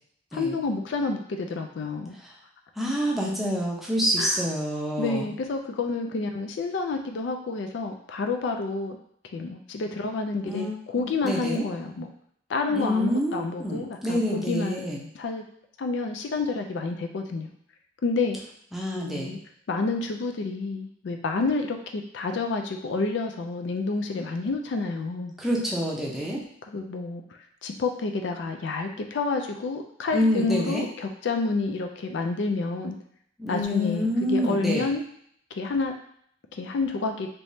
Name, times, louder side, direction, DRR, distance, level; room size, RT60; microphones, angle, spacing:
voice 1, 0.3-2.2 4.2-4.4 5.0-9.0 9.3-12.1 12.5-14.8 15.1-15.4 15.8-17.5 18.0-18.4 18.9-19.4 19.7-25.3 26.7-27.2 27.6-33.0 33.5-35.0 35.5-35.9 36.5-37.3, left 3 dB, 70° left, 4 dB, 0.4 m, -29 dB
voice 2, 2.8-5.3 10.4-10.7 11.2-11.7 12.7-15.0 18.7-19.3 25.4-26.4 30.1-30.8 33.4-34.9, equal, ahead, -4 dB, 0.6 m, -27 dB
3.4 x 3.0 x 2.7 m, 0.67 s
head